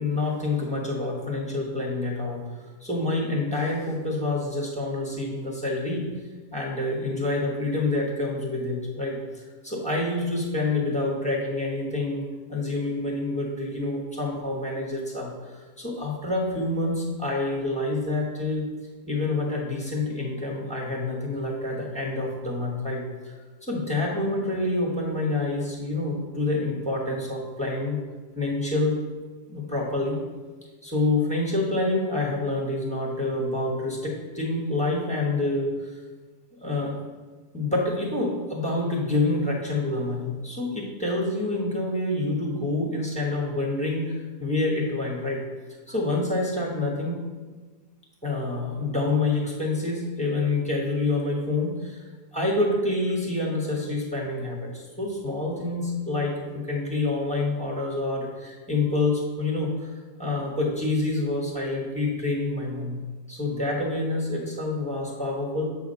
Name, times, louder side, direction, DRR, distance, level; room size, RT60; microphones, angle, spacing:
voice 1, 0.0-2.4 2.8-6.1 6.5-18.7 19.0-23.3 23.6-28.0 28.4-29.0 29.5-30.2 30.8-35.9 36.6-36.9 37.5-45.4 45.9-47.2 48.2-52.0 52.3-59.9 60.2-63.0 63.3-65.6, left 2 dB, 5° left, -2 dB, 0.9 m, -27 dB
7.6 x 3.6 x 5.5 m, 1.4 s
omnidirectional pair, 1.9 m